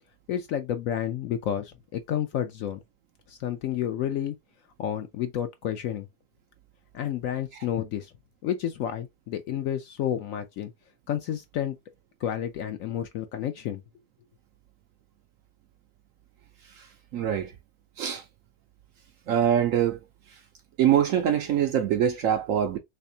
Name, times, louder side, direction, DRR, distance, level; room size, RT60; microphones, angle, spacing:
voice 1, 0.3-2.8 3.3-4.4 4.8-6.1 6.9-8.1 8.4-10.7 11.1-11.8 12.2-13.8, left 10 dB, 70° left, 0.8 m, -30 dB
voice 2, 17.1-17.5 18.0-18.2 19.3-20.0 20.8-22.8, right 9 dB, 70° right, 0.8 m, -24 dB
3.5 x 3.3 x 2.6 m
omnidirectional pair, 1.7 m